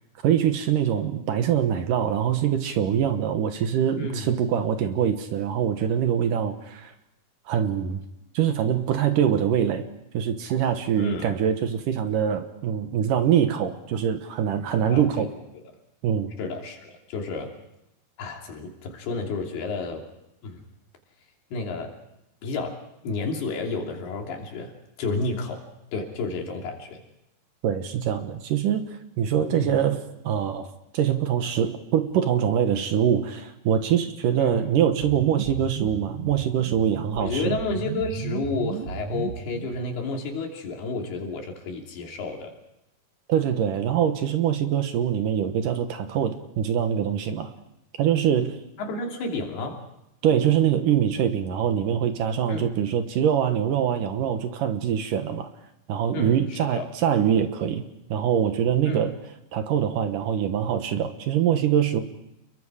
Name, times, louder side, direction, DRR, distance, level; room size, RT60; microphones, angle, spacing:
voice 1, 0.2-6.9 7.5-8.0 8.3-9.9 10.1-15.3 16.0-16.3 27.6-37.6 43.3-47.5 48.0-48.6 50.2-55.5 55.9-57.8 58.1-59.2 59.5-62.0, right 9 dB, 65° right, 8 dB, 2.5 m, -24 dB
voice 2, 4.0-4.3 11.0-11.3 14.9-15.3 15.5-15.6 16.4-17.6 18.2-20.1 20.4-20.6 21.5-21.9 22.4-22.8 23.0-25.6 25.9-27.0 29.5-29.8 34.4-34.6 37.2-42.5 48.8-49.8 52.5-52.8 56.1-56.9 58.9-59.0, left 3 dB, 80° left, 1 dB, 5.0 m, -31 dB
sound 1, 34.9-39.9, right 9 dB, 90° right, 1.5 m, -34 dB
29.5 x 22.0 x 5.0 m, 0.85 s
omnidirectional pair, 4.5 m